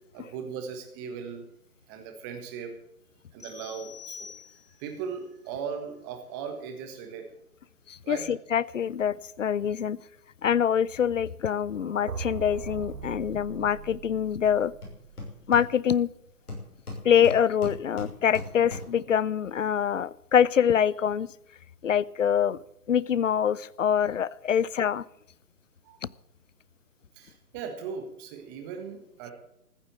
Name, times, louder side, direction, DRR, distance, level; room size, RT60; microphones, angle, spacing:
voice 1, 0.1-1.5 1.9-2.7 3.3-7.3 8.0-8.2 25.8-26.0 27.1-29.3, right 6 dB, 15° right, 5 dB, 1.5 m, -38 dB
sound 1, 3.4-4.9, left 7 dB, 5° left, 2.8 m, -45 dB
voice 2, 7.9-10.0 10.4-14.7 15.5-16.1 17.0-21.3 21.8-22.6 22.9-25.0 26.0-26.1, left 8 dB, 55° left, 23 dB, 0.6 m, -25 dB
sound 2, 11.7-15.7, right 6 dB, 75° right, 1.6 m, -40 dB
Hammer, 14.4-14.5 14.8-16.1 16.5-19.1, left 2 dB, 75° left, 6.4 m, -40 dB
14.5 x 7.3 x 8.6 m, 0.77 s
hypercardioid pair, 155°, 45 cm